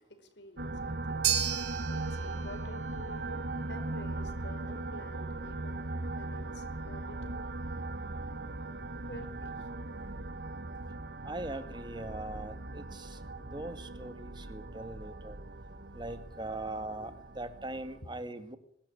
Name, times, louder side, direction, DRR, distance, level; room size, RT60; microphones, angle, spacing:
voice 1, 0.1-1.2 1.5-3.4 3.7-7.5 9.1-9.5 16.8-17.1, left 1 dB, 80° left, 4.9 m, -50 dB
sound 1, 0.6-18.0, right 2 dB, 65° right, 1.3 m, -39 dB
sound 2, 1.2-9.6, right 9 dB, 80° right, 4.3 m, -39 dB
voice 2, 11.3-13.2 13.5-15.4 16.0-17.1 17.4-18.6, right 2 dB, 25° right, 2.0 m, -40 dB
23.0 x 13.5 x 10.0 m
head